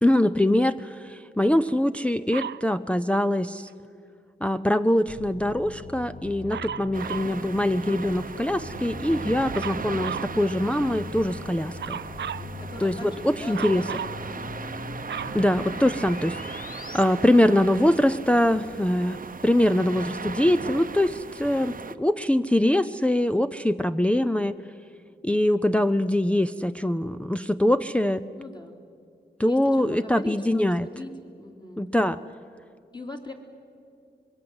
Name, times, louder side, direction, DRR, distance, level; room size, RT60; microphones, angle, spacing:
voice 1, 0.0-3.7 4.4-12.0 12.8-13.8 15.3-16.4 16.9-19.2 19.4-24.6 25.2-28.2 29.4-30.9 31.8-32.2, left 1 dB, 5° left, 8 dB, 0.5 m, -23 dB
Dog, 2.3-2.7 6.5-7.4 9.5-10.3 11.8-12.5 13.5-14.2 14.7-16.2 17.0-17.1, right 9 dB, 80° right, 0.5 m, -35 dB
sound 1, 5.1-17.0, left 3 dB, 50° left, 1.3 m, -41 dB
sound 2, 6.9-22.0, right 5 dB, 50° right, 0.9 m, -37 dB
voice 2, 12.4-14.5 18.5-19.0 28.4-28.8 29.4-31.1 31.4-31.8 32.9-33.3, left 2 dB, 25° left, 2 dB, 3.3 m, -41 dB
25.5 x 22.0 x 8.0 m, 2.4 s
wide cardioid pair, 85°, 18 cm